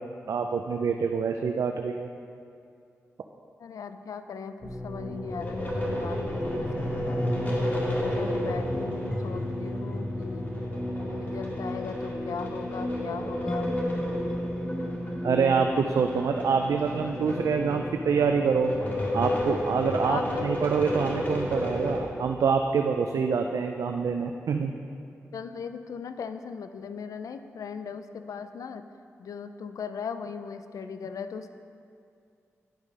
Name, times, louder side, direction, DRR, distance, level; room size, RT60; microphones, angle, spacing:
voice 1, 0.3-2.1 15.2-18.8 19.1-24.7, right 5 dB, 75° right, 4 dB, 0.4 m, -26 dB
voice 2, 3.6-7.2 8.0-10.5 11.0-13.7 20.1-20.5 25.3-28.9 29.2-31.5, left 6 dB, 80° left, 10 dB, 0.4 m, -38 dB
sound 1, 4.6-22.0, left 1 dB, 30° left, 2.2 m, -32 dB
sound 2, 6.4-15.7, equal, 10° left, 0.7 m, -36 dB
10.5 x 4.8 x 5.4 m, 2.4 s
cardioid pair, 50°, 6 cm